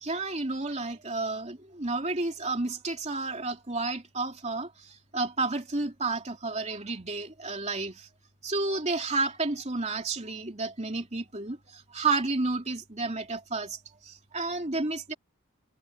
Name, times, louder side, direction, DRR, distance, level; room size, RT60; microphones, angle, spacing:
voice 1, 0.0-4.7 5.1-8.1 8.4-11.6 11.9-13.8 14.1-15.1, right 3 dB, 30° right, 3.0 m, -31 dB
head